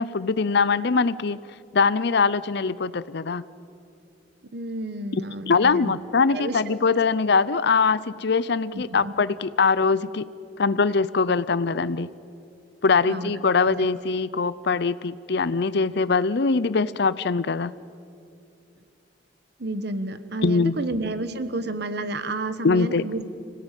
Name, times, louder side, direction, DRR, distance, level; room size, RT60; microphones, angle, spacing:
voice 1, 0.0-1.4 1.7-3.4 5.5-10.2 10.6-12.1 12.8-17.7 20.4-20.8 22.6-23.0, left 4 dB, 60° left, 17 dB, 0.6 m, -22 dB
voice 2, 4.5-5.9 6.3-6.9 8.7-9.1 13.0-13.3 13.6-13.7 19.6-23.3, right 2 dB, 60° right, 11 dB, 1.3 m, -31 dB
26.0 x 17.5 x 9.2 m, 2.5 s
head